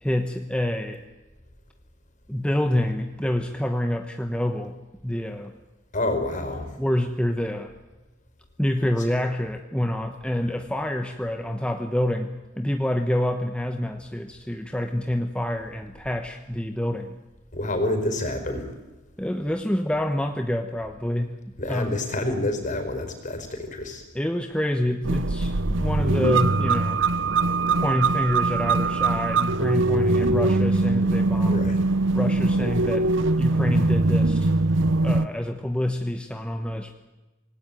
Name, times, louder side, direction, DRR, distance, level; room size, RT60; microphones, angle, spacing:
voice 1, 0.0-1.0 2.3-4.8 5.0-5.5 6.8-7.7 8.6-12.3 12.6-17.1 19.2-21.4 21.7-22.0 24.1-27.0 27.8-31.7 32.1-33.1 33.4-34.5 35.0-36.9, left 1 dB, 5° left, 5 dB, 1.1 m, -27 dB
voice 2, 5.9-6.7 17.5-18.7 21.6-24.0 31.4-31.8, left 1 dB, 40° left, 7 dB, 5.0 m, -28 dB
sound 1, 25.0-35.3, right 3 dB, 90° right, 0.9 m, -22 dB
27.0 x 19.0 x 9.2 m, 1.1 s
head